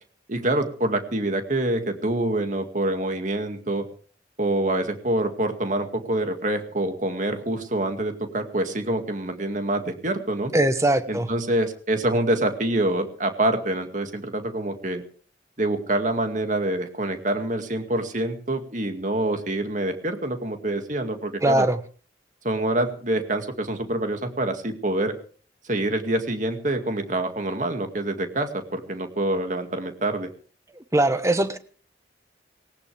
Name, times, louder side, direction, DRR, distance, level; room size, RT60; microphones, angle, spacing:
voice 1, 0.3-3.9 4.4-10.5 11.1-15.0 15.6-21.7 22.4-25.1 25.6-30.3, right 1 dB, 45° right, 6 dB, 2.2 m, -26 dB
voice 2, 10.5-11.3 21.4-21.8 30.9-31.6, right 1 dB, 15° right, 10 dB, 1.1 m, -21 dB
19.0 x 18.5 x 3.4 m, 0.41 s
head